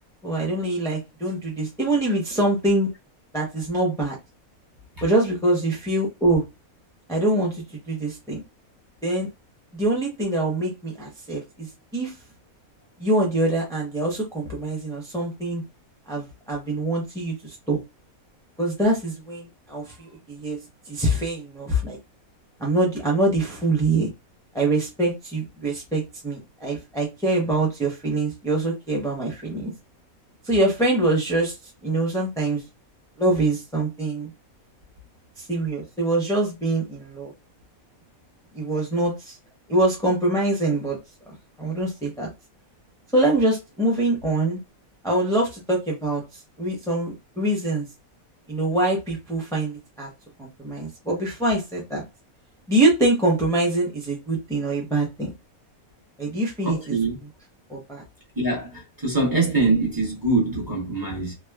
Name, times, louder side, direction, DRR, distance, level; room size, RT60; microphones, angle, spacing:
voice 1, 0.2-2.9 3.3-4.2 5.0-6.4 7.1-8.4 9.0-9.3 9.7-12.1 13.0-15.6 16.1-17.8 18.6-20.6 20.9-22.0 22.6-24.1 24.5-29.7 30.4-31.5 31.8-32.6 33.2-34.3 35.4-37.3 38.5-39.4 39.7-41.0 41.6-42.3 43.1-44.6 45.0-46.2 46.6-47.9 48.5-50.1 50.4-52.1 52.7-55.3 56.2-57.0 57.7-58.0, right 2 dB, 5° left, 0.5 m, -24 dB
voice 2, 56.6-57.2 58.4-61.3, right 3 dB, 15° right, 0.8 m, -23 dB
3.2 x 2.2 x 2.2 m
omnidirectional pair, 1.5 m